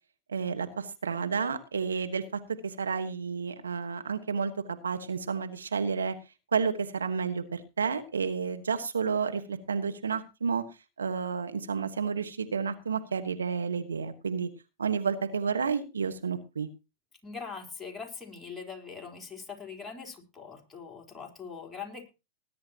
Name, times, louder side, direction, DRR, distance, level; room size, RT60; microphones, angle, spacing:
voice 1, 0.3-6.1 6.5-10.6 11.0-14.5 14.8-16.7, right 5 dB, 90° right, 9 dB, 1.4 m, -31 dB
voice 2, 17.2-22.1, left 5 dB, 10° left, 0 dB, 4.1 m, -42 dB
20.0 x 10.5 x 2.9 m, 0.28 s
hypercardioid pair, 105°, 0 cm